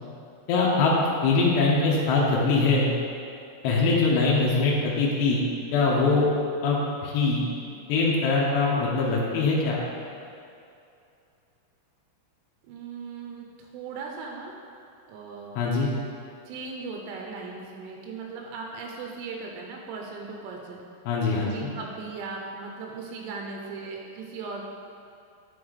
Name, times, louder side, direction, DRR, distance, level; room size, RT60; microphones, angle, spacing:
voice 1, 0.5-0.9 1.2-2.9 3.6-5.4 5.7-6.3 6.6-7.5 7.9-9.8 15.6-15.9 21.1-21.7, left 3 dB, 80° left, -5 dB, 2.6 m, -22 dB
voice 2, 12.7-14.5 15.1-15.6 16.5-20.8 21.5-24.7, right 4 dB, 85° right, 0 dB, 3.2 m, -38 dB
9.8 x 3.9 x 3.2 m, 2.5 s
omnidirectional pair, 5.7 m